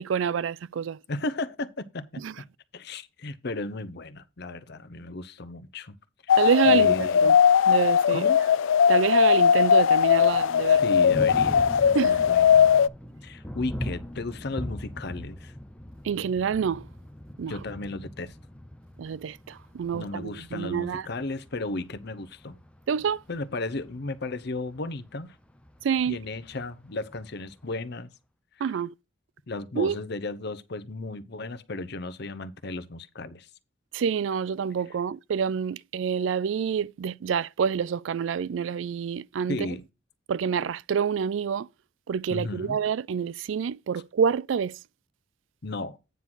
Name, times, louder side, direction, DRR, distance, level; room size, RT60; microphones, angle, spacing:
voice 1, 0.0-1.0 2.2-2.3 6.3-7.4 7.7-8.3 8.9-10.8 11.9-12.3 16.0-16.8 17.4-17.6 19.0-21.0 22.9-23.2 25.8-26.2 28.6-28.9 29.8-30.0 33.9-39.7 40.3-41.7 42.1-44.8, right 7 dB, 80° right, 0.4 m, -27 dB
voice 2, 1.1-2.2 2.7-6.0 6.6-7.2 8.1-8.4 10.7-12.7 13.2-15.5 17.5-18.4 19.9-22.6 23.3-25.4 26.1-28.1 28.6-28.7 29.5-33.5 39.5-39.8 42.3-42.8 45.6-46.0, left 2 dB, 60° left, 0.8 m, -35 dB
sound 1, 6.3-12.9, left 7 dB, 90° left, 0.4 m, -19 dB
Thunder, 9.9-27.9, equal, 5° left, 0.9 m, -41 dB
9.3 x 3.9 x 6.1 m
head